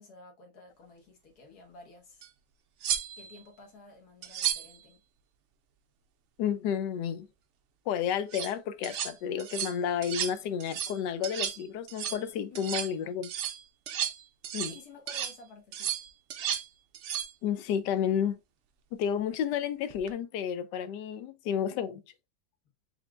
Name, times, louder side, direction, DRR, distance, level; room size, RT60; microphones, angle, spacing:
voice 1, 0.0-2.3 3.2-5.0 12.5-12.7 14.7-15.9, left 3 dB, 65° left, 1.8 m, -52 dB
sound 1, 2.2-2.3 2.8-3.4 4.2-4.8 8.1-8.5 8.8-9.1 9.4-9.8 10.0-10.4 10.6-11.0 11.2-11.6 11.9-12.2 12.6-12.9 13.2-14.8 15.1-15.4 15.7-16.7 16.9-17.3 19.9-20.1, right 10 dB, 80° right, 0.6 m, -33 dB
voice 2, 6.4-7.3 7.9-13.3 14.5-14.8 17.4-18.4 18.9-22.0, left 8 dB, 85° left, 1.2 m, -31 dB
4.5 x 3.5 x 2.4 m
omnidirectional pair, 1.8 m